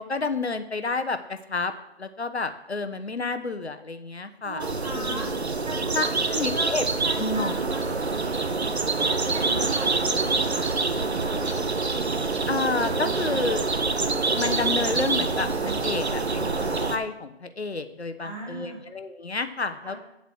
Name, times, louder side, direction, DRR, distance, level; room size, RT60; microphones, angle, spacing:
voice 1, 0.0-1.7 2.0-4.6 5.0-5.3 5.9-6.8 7.2-7.8 12.5-13.6 14.3-20.0, left 3 dB, 70° left, 9 dB, 1.1 m, -30 dB
voice 2, 4.4-6.0 6.3-6.8 7.0-7.8 9.0-11.5 18.2-18.8 19.8-20.0, right 1 dB, 40° right, -4 dB, 3.8 m, -38 dB
sound 1, 4.6-17.0, right 3 dB, 70° right, 1.1 m, -26 dB
8.7 x 7.9 x 6.3 m, 0.85 s
figure-of-eight pair, 170°, 33 cm